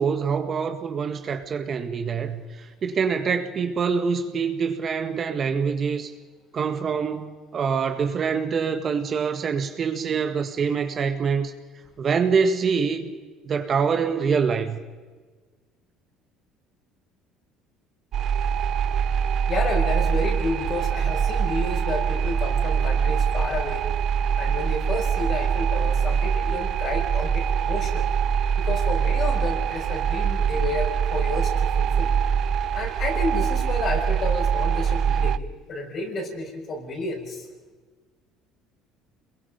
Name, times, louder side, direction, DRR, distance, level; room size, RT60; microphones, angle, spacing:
voice 1, 0.0-6.1 6.5-11.5 12.0-13.1 13.4-14.8, right 6 dB, 35° right, 1.7 m, -25 dB
sound 1, 18.1-35.4, right 7 dB, 55° right, 0.6 m, -23 dB
voice 2, 19.5-23.8 24.4-28.0 28.6-32.1 32.7-35.4 35.7-37.4, left 2 dB, 45° left, 6.0 m, -31 dB
27.0 x 22.0 x 5.3 m
cardioid pair, 115°, 0 cm